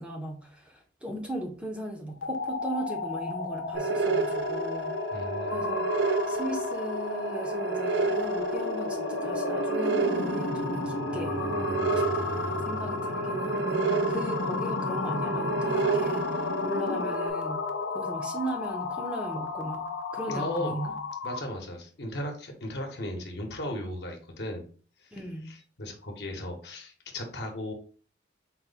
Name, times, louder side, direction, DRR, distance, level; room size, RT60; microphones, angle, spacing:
voice 1, 0.0-5.0 5.5-5.9 6.3-17.7 17.9-21.0 25.1-25.5, right 1 dB, 5° right, 1 dB, 0.5 m, -38 dB
sound 1, 2.1-21.5, left 4 dB, 90° left, 0.6 m, -33 dB
sound 2, 3.7-17.3, right 4 dB, 60° right, 0.4 m, -31 dB
voice 2, 5.1-5.6 20.3-20.8 21.2-24.7 25.0-25.1 25.5-27.7, left 1 dB, 60° left, 3 dB, 0.9 m, -36 dB
4.3 x 2.1 x 3.8 m, 0.42 s
head